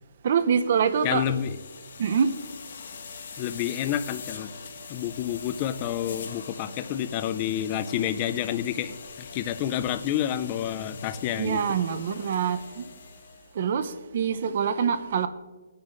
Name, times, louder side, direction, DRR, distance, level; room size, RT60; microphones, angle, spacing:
voice 1, 0.2-1.2 2.0-2.3 11.4-12.8 13.6-15.3, right 7 dB, 45° right, 0.6 m, -25 dB
sound 1, 0.8-13.5, left 5 dB, 55° left, 1.4 m, -43 dB
voice 2, 1.0-1.6 3.4-4.5 4.9-11.6, left 11 dB, 25° left, 0.4 m, -29 dB
19.5 x 9.9 x 2.5 m
hypercardioid pair, 165°, 0 cm